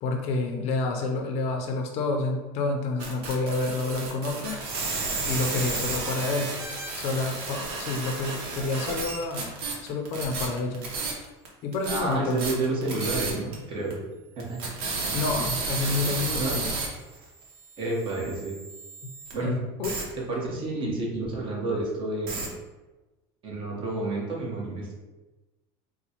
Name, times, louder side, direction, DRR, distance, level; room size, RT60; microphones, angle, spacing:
voice 1, 0.0-4.6 5.2-6.5 7.0-10.9 11.6-12.4 15.1-16.7 19.4-20.0, left 3 dB, 60° left, 4 dB, 0.5 m, -29 dB
sound 1, 3.0-11.5 11.7-13.5 13.9-14.0 14.4-19.3 19.8-20.0 22.3-22.5, right 3 dB, 85° right, 0.8 m, -32 dB
voice 2, 11.9-14.0 14.4-14.6 15.0-15.2 16.3-16.6 17.8-18.6 19.3-19.6 20.3-22.5 23.4-24.9, right 2 dB, 40° right, -3 dB, 1.0 m, -30 dB
4.1 x 2.1 x 2.9 m, 1.2 s
cardioid pair, 135°, 13 cm